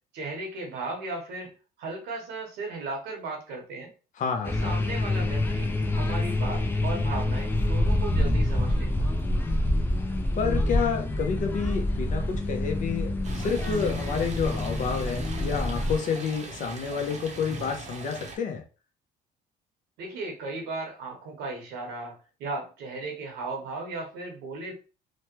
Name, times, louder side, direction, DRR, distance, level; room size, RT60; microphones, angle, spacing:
voice 1, 0.1-1.5 1.8-3.9 4.4-9.1 20.0-24.7, right 3 dB, 85° right, 1 dB, 1.1 m, -36 dB
voice 2, 4.2-4.8 10.3-18.6, left 6 dB, 50° left, 5 dB, 0.7 m, -29 dB
sound 1, 4.4-16.0, left 1 dB, 10° left, 0.4 m, -27 dB
Stream, 13.2-18.4, right 3 dB, 45° right, 0.7 m, -40 dB
3.1 x 2.1 x 2.9 m, 0.35 s
cardioid pair, 110°, 17 cm